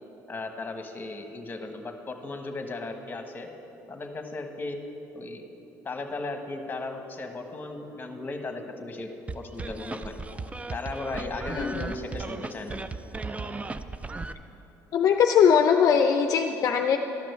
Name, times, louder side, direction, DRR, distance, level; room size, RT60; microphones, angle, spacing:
voice 1, 0.3-3.5 3.9-4.8 5.1-5.5 5.8-10.2 10.7-12.8, left 3 dB, 25° left, 5 dB, 1.2 m, -36 dB
sound 1, 9.3-14.3, right 3 dB, 20° right, 0.4 m, -36 dB
voice 2, 11.5-11.9 14.9-17.0, left 7 dB, 55° left, 5 dB, 0.5 m, -21 dB
12.0 x 6.0 x 6.9 m, 3.0 s
supercardioid pair, 90°, 7 cm